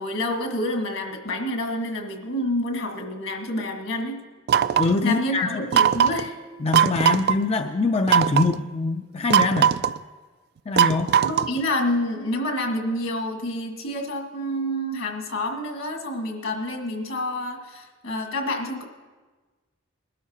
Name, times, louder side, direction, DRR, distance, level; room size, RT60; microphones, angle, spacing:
voice 1, 0.0-4.2 5.0-6.4 11.2-18.8, left 1 dB, 75° left, 2 dB, 1.8 m, -28 dB
sound 1, 4.5-5.0 5.7-6.3 6.7-7.4 8.1-8.5 9.3-10.0 10.8-11.6, right 9 dB, 55° right, 0.3 m, -19 dB
voice 2, 4.8-5.6 6.6-9.7 10.7-11.1, left 3 dB, 30° left, 5 dB, 0.4 m, -23 dB
21.0 x 13.0 x 2.9 m, 1.3 s
head